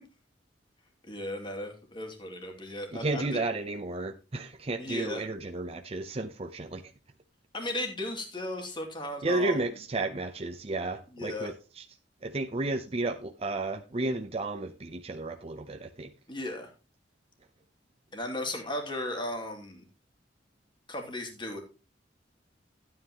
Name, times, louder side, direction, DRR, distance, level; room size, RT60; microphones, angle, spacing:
voice 1, 1.0-3.5 4.8-5.2 7.5-9.6 11.1-11.5 16.3-16.7 18.1-19.8 20.9-21.6, left 1 dB, 25° left, 3 dB, 2.7 m, -36 dB
voice 2, 2.9-6.8 9.2-11.8 12.2-16.1, right 2 dB, 35° right, 6 dB, 0.7 m, -32 dB
13.0 x 9.3 x 2.9 m, 0.32 s
head